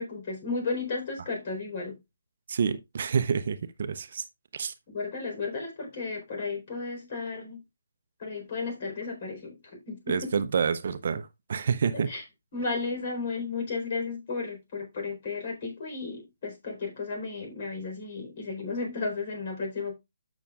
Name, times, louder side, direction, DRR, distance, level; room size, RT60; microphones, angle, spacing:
voice 1, 0.0-2.0 4.9-7.6 8.2-10.3 11.9-12.2 12.5-20.0, left 4 dB, 40° left, 4.2 m, -34 dB
voice 2, 2.5-4.2 4.5-4.7 10.1-12.1, right 6 dB, 50° right, 0.7 m, -28 dB
12.0 x 6.2 x 2.4 m
figure-of-eight pair, 150°, 0 cm